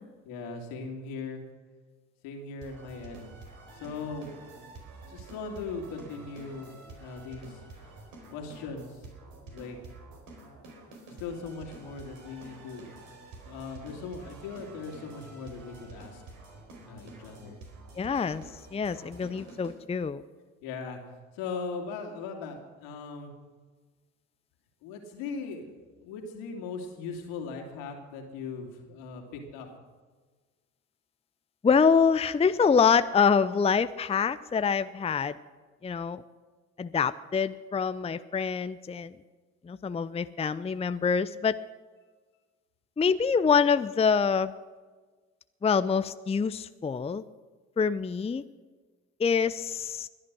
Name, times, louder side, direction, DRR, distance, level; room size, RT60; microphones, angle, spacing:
voice 1, 0.2-1.4 2.2-3.3 3.7-4.3 5.1-7.6 8.3-9.0 9.4-9.8 11.2-13.0 13.4-16.2 16.9-17.6 20.6-21.0 21.3-23.3 24.8-29.7, left 4 dB, 75° left, 3 dB, 2.8 m, -39 dB
sound 1, 2.6-19.7, right 2 dB, 65° right, 4.5 m, -48 dB
voice 2, 18.0-18.4 18.7-20.2 31.6-35.4 35.8-36.2 36.8-39.1 39.6-41.6 43.0-44.5 45.6-47.2 47.8-48.4 49.2-50.1, left 6 dB, 15° left, 13 dB, 0.6 m, -25 dB
21.0 x 11.0 x 6.2 m, 1.4 s
hypercardioid pair, 50°, 37 cm